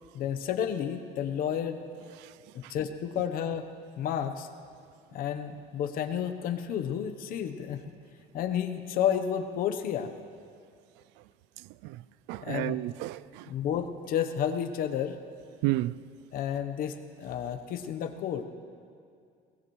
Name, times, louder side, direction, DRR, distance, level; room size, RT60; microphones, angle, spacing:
voice 1, 0.1-1.8 2.7-3.6 4.0-4.5 5.1-7.8 8.3-10.1 12.4-12.8 13.5-15.2 16.3-18.4, left 9 dB, 55° left, 1.0 m, -31 dB
voice 2, 12.3-13.5 15.6-16.0, right 18 dB, 85° right, 0.4 m, -31 dB
21.0 x 19.0 x 3.2 m
cardioid pair, 155°, 17 cm